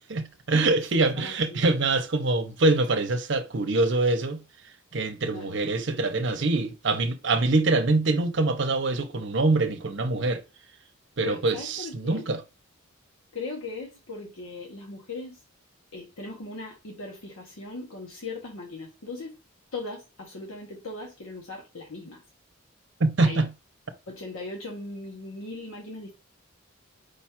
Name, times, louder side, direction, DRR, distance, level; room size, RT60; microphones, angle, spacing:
voice 1, 0.0-4.4 4.9-10.4 11.2-12.4 23.0-23.5, right 2 dB, 55° right, 0.7 m, -24 dB
voice 2, 0.5-1.6 5.3-5.5 11.2-12.3 13.3-15.4 15.9-19.4 19.7-22.2 23.2-23.5 24.1-26.1, left 3 dB, 80° left, 1.0 m, -39 dB
5.1 x 2.4 x 4.3 m
head